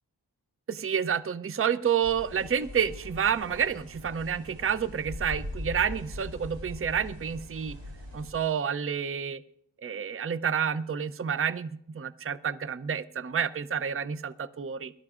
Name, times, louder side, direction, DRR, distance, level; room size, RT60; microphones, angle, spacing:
voice 1, 0.7-7.8 8.1-9.4 9.8-14.9, right 7 dB, 30° right, 15 dB, 0.5 m, -29 dB
sound 1, 2.0-8.3, left 1 dB, 90° right, 2.7 m, -41 dB
21.0 x 12.0 x 2.4 m, 0.72 s
wide cardioid pair, 40°, 43 cm